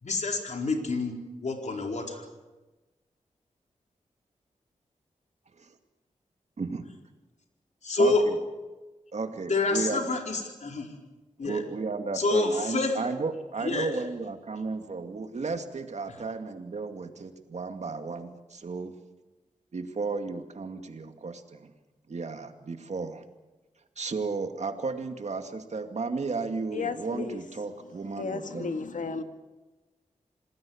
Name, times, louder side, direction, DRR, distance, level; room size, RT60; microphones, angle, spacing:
voice 1, 0.0-1.1 1.4-2.3 7.8-8.2 9.5-10.9 11.4-11.6 12.1-13.0 13.6-13.9, left 3 dB, 65° left, 2 dB, 4.4 m, -27 dB
voice 2, 8.0-8.4 9.1-10.1 11.4-19.0 19.7-21.7 22.1-23.2 24.0-28.7, right 4 dB, 60° right, 6 dB, 2.4 m, -34 dB
voice 3, 26.7-27.4 28.2-29.2, left 4 dB, 80° left, 7 dB, 1.9 m, -33 dB
27.5 x 19.5 x 7.3 m, 1.1 s
wide cardioid pair, 85°, 13 cm